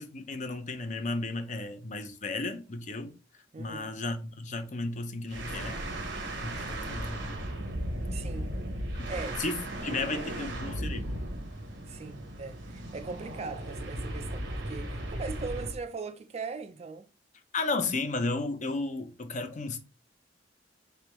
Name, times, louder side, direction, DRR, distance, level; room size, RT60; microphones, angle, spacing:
voice 1, 0.0-3.1 3.6-5.8 6.4-7.4 9.0-9.1 9.4-11.2 17.5-19.8, left 3 dB, 45° left, 0.6 m, -34 dB
voice 2, 3.5-3.9 8.1-8.5 9.1-9.4 10.3-10.5 11.9-17.1, right 4 dB, 35° right, 0.4 m, -40 dB
sound 1, 5.3-15.8, right 1 dB, 75° right, 1.0 m, -36 dB
4.3 x 3.4 x 3.0 m
head